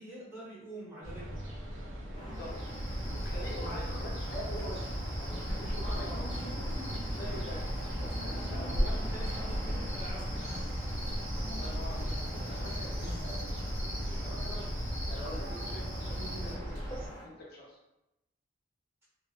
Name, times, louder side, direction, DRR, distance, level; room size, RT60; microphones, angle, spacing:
voice 1, 0.0-1.4 3.5-3.8 5.9-6.2 8.5-10.7 12.9-13.2, right 1 dB, 10° right, -7 dB, 1.0 m, -46 dB
sound 1, 1.0-17.1, equal, 70° right, 0.6 m, -38 dB
sound 2, 2.1-17.2, equal, 20° left, 0.7 m, -45 dB
voice 2, 2.2-2.5 3.2-6.2 7.0-7.6 8.1-8.7 11.5-12.1 12.4-13.5 13.8-14.6 15.1-16.8 17.2-17.8, left 1 dB, 50° left, -4 dB, 0.5 m, -45 dB
Cricket, 2.3-16.5, equal, 40° right, 0.9 m, -38 dB
3.2 x 2.0 x 2.2 m, 0.92 s
head